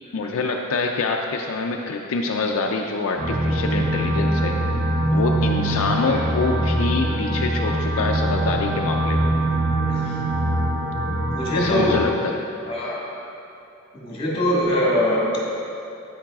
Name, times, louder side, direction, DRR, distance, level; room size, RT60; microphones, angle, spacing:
voice 1, 0.1-4.6 5.1-9.3 11.6-12.4, left 3 dB, 75° left, 2 dB, 0.4 m, -25 dB
sound 1, 3.2-12.1, right 1 dB, 55° right, 1.0 m, -23 dB
voice 2, 11.3-12.0 12.7-13.2 13.9-15.4, equal, 25° left, -5 dB, 1.6 m, -23 dB
9.1 x 8.6 x 2.4 m, 2.8 s
head